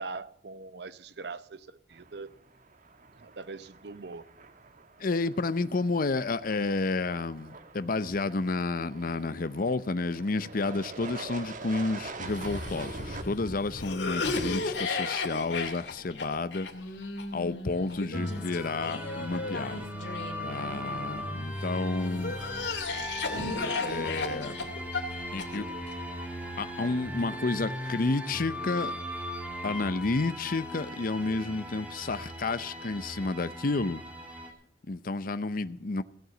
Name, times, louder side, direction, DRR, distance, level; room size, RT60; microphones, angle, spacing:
voice 1, 0.0-2.3 3.2-4.2, right 4 dB, 70° right, 0.8 m, -41 dB
sound 1, 1.9-13.2, right 3 dB, 50° right, 1.3 m, -45 dB
voice 2, 5.0-16.7 17.3-19.9 20.4-22.4 23.6-24.6 25.3-25.7 26.6-29.0 29.6-34.0 34.9-36.0, left 3 dB, 55° left, 0.7 m, -31 dB
Cough, 12.2-21.4 22.0-25.9, left 3 dB, 90° left, 2.4 m, -35 dB
sound 2, 18.1-34.5, equal, 10° right, 2.6 m, -38 dB
17.0 x 7.9 x 7.7 m
head